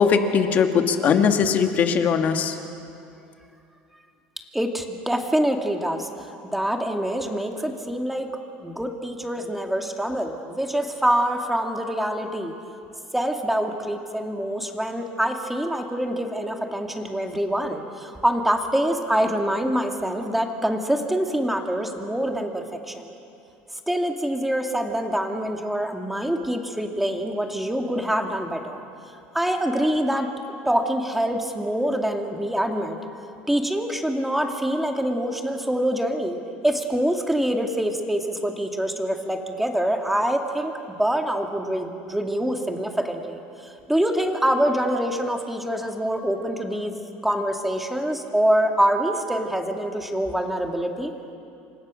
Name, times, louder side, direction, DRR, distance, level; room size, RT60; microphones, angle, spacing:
voice 1, 0.0-2.5, left 6 dB, 40° left, 6 dB, 2.0 m, -20 dB
voice 2, 4.5-8.3 8.6-12.5 13.1-23.1 23.9-28.8 29.3-33.0 33.5-36.4 36.6-46.9 47.2-51.1, right 1 dB, 5° right, 3 dB, 2.2 m, -25 dB
28.5 x 25.5 x 6.4 m, 2.7 s
cardioid pair, 135°, 4 cm